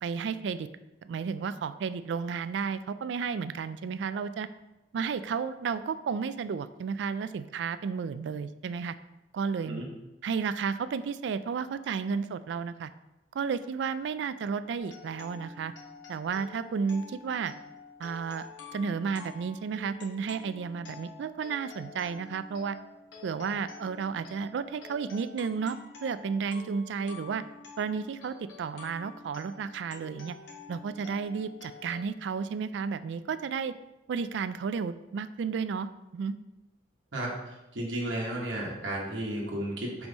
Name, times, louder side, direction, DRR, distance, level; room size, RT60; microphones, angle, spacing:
voice 1, 0.0-0.7 1.0-4.5 4.9-9.0 9.3-9.8 10.2-12.9 13.3-15.7 16.1-17.5 18.0-22.8 23.2-27.4 27.8-30.4 30.7-33.7 34.1-36.4, right 6 dB, 70° right, 13 dB, 0.3 m, -32 dB
sound 1, 14.8-32.0, left 5 dB, 75° left, 1.1 m, -48 dB
voice 2, 37.7-40.1, right 1 dB, 90° right, -3 dB, 1.2 m, -33 dB
5.3 x 4.7 x 4.0 m, 0.98 s
head